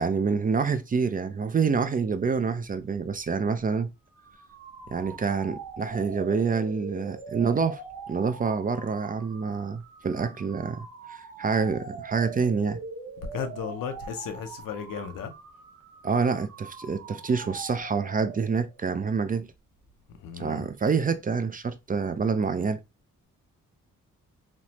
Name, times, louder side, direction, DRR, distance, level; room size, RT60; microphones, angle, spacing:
voice 1, 0.0-3.9 4.9-7.8 8.1-12.8 16.0-19.5 20.4-22.8, right 5 dB, 25° right, 0.4 m, -27 dB
sound 1, 4.1-18.8, right 5 dB, 65° right, 0.8 m, -43 dB
voice 2, 13.3-15.3 20.2-20.7, left 7 dB, 75° left, 0.7 m, -35 dB
3.1 x 2.0 x 2.8 m
supercardioid pair, 50°, 33 cm